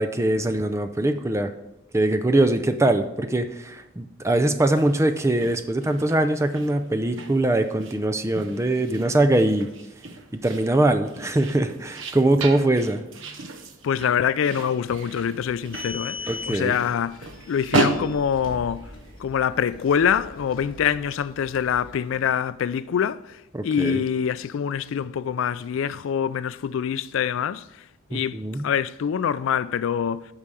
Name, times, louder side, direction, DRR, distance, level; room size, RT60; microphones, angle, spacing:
voice 1, 0.0-1.5 1.9-9.7 10.3-13.0 16.3-16.7 23.5-24.0 28.1-28.6, right 1 dB, 15° right, 0.4 m, -22 dB
sound 1, 4.7-19.1, right 3 dB, 70° right, 0.8 m, -34 dB
voice 2, 13.8-18.9 19.2-27.8 28.1-28.4 28.6-30.3, left 8 dB, 75° left, 0.3 m, -25 dB
sound 2, 15.5-22.4, left 3 dB, 40° left, 2.4 m, -41 dB
8.7 x 5.6 x 4.8 m
head